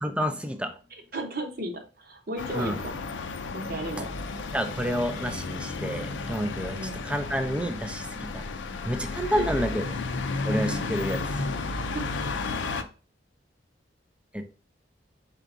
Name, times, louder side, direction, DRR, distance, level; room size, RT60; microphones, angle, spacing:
voice 1, 0.0-0.8 2.5-2.8 4.5-6.8 7.0-8.4 8.8-9.8 10.4-11.5 14.3-14.6, equal, 5° right, 7 dB, 0.4 m, -29 dB
voice 2, 1.1-3.0 3.5-4.1 6.7-7.0 9.2-9.7 11.9-12.0, right 1 dB, 50° right, 4 dB, 0.8 m, -34 dB
sound 1, 2.4-12.8, left 3 dB, 80° left, 0.5 m, -33 dB
4.5 x 3.8 x 2.5 m, 0.35 s
head